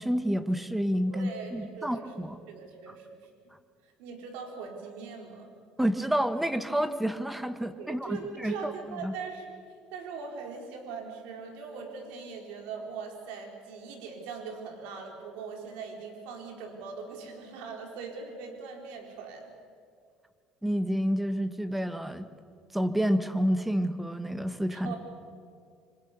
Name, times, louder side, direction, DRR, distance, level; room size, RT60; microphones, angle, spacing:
voice 1, 0.0-2.4 5.8-9.1 20.6-22.3 22.7-24.9, equal, 5° right, 10 dB, 1.4 m, -29 dB
voice 2, 1.1-3.3 3.8-5.5 7.8-9.6 9.9-19.5 24.7-25.0, right 5 dB, 85° right, 2 dB, 4.2 m, -41 dB
26.5 x 26.0 x 6.9 m, 2.2 s
cardioid pair, 135°, 2 cm